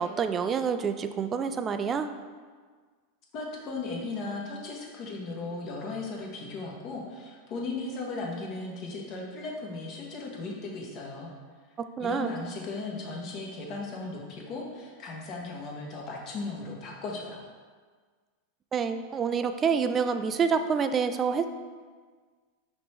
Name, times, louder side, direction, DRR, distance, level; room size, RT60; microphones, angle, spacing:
voice 1, 0.0-2.1 12.0-12.3 18.7-21.5, right 6 dB, 30° right, 9 dB, 0.3 m, -27 dB
voice 2, 3.3-11.3 12.0-17.4, left 3 dB, 45° left, -1 dB, 1.1 m, -36 dB
5.1 x 3.0 x 3.3 m, 1.5 s
hypercardioid pair, 95°, 0 cm